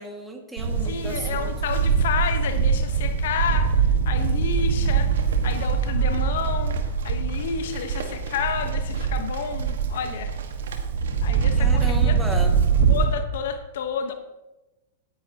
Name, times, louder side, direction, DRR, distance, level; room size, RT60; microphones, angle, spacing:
voice 1, 0.0-1.5 11.6-12.5, right 1 dB, 10° right, 3 dB, 2.0 m, -34 dB
Livestock farm animals working animals, 0.6-13.0, right 6 dB, 75° right, 1.5 m, -23 dB
voice 2, 0.8-10.3 11.2-12.2 12.9-14.1, left 7 dB, 70° left, 8 dB, 1.0 m, -30 dB
17.5 x 9.8 x 2.9 m, 1.1 s
hypercardioid pair, 115°, 0 cm